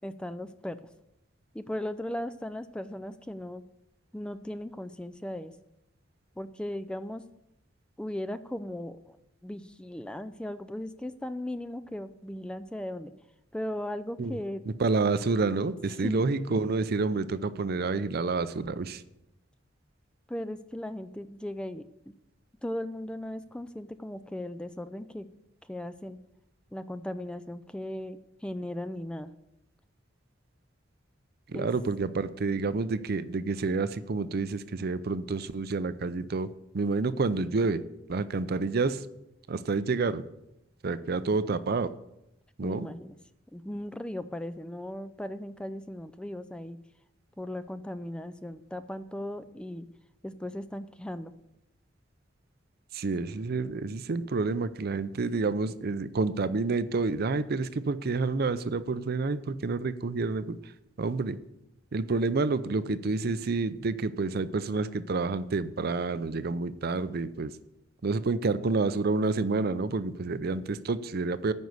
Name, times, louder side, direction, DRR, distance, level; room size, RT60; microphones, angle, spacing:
voice 1, 0.0-0.8 1.5-3.6 4.1-5.6 6.4-7.2 8.0-9.2 9.4-13.1 13.5-14.6 16.0-16.2 20.3-21.9 22.6-25.3 25.6-26.2 26.7-29.3 31.5-31.7 42.6-43.2 43.5-46.8 47.4-49.9 50.2-51.3, left 1 dB, 5° left, 12 dB, 0.3 m, -37 dB
voice 2, 14.8-19.0 31.5-36.5 36.7-37.8 38.1-39.1 39.5-40.2 40.8-41.9 42.6-42.9 52.9-60.6 61.0-61.4 61.9-67.5 68.0-71.5, right 3 dB, 55° right, 14 dB, 0.5 m, -29 dB
9.5 x 5.4 x 7.8 m, 0.85 s
head